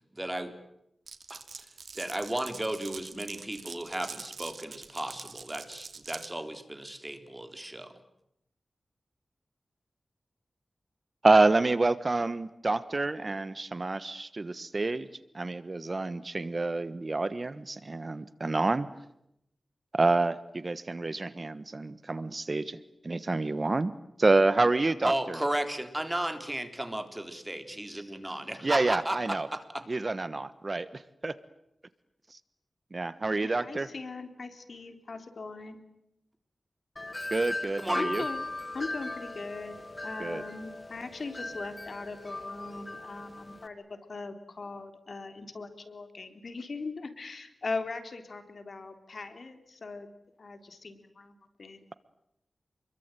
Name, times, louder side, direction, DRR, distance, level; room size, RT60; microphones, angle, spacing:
voice 1, 0.1-0.5 1.3-1.7 1.9-7.9 25.0-29.8 37.8-38.1, right 1 dB, 15° right, 8 dB, 3.7 m, -34 dB
Glass, 1.1-6.3, right 5 dB, 80° right, 2.6 m, -44 dB
voice 2, 11.2-15.1 15.3-18.9 19.9-22.8 23.0-23.9 24.2-25.4 28.6-29.5 29.9-31.3 32.9-33.9 37.3-38.2 40.2-40.4, right 3 dB, 45° right, 15 dB, 1.3 m, -28 dB
voice 3, 33.4-35.8 38.0-38.4 38.7-39.8 40.0-50.1 50.4-51.9, left 3 dB, 65° left, 8 dB, 3.6 m, -40 dB
Wind chime, 37.0-43.7, left 2 dB, 30° left, 1.9 m, -38 dB
28.5 x 22.5 x 9.1 m, 0.81 s
wide cardioid pair, 65°, 0 cm